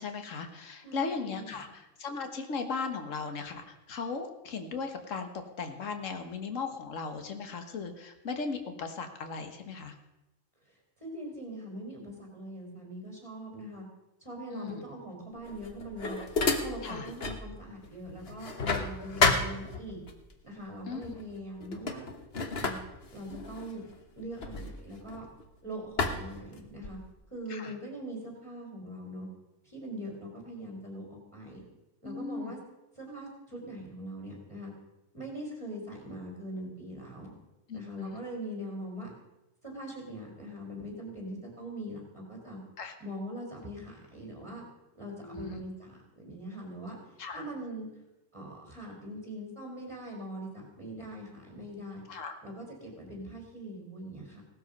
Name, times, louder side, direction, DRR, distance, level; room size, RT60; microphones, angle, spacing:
voice 1, 0.0-5.3 5.6-10.0 14.5-14.8 16.8-17.1 20.9-21.1 27.5-27.7 32.0-32.5 37.7-38.2 42.8-42.9 45.2-45.6 47.2-47.4 52.1-52.3, left 4 dB, 75° left, 6 dB, 1.7 m, -37 dB
voice 2, 0.8-1.7 11.0-13.8 14.2-16.2 16.6-20.0 20.4-22.1 22.6-22.8 23.1-23.8 24.1-25.3 25.6-27.0 27.3-29.3 29.6-31.6 32.0-32.6 33.0-34.7 35.1-37.3 37.7-39.1 39.6-42.6 43.0-44.6 44.9-47.9 48.3-52.0 52.4-54.4, right 1 dB, 20° right, -1 dB, 4.9 m, -42 dB
sound 1, 15.4-17.5 17.8-20.1 21.0-21.3 21.6-25.5 26.0-27.1, left 3 dB, 50° left, 1.5 m, -31 dB
17.5 x 13.0 x 5.3 m, 0.96 s
omnidirectional pair, 1.3 m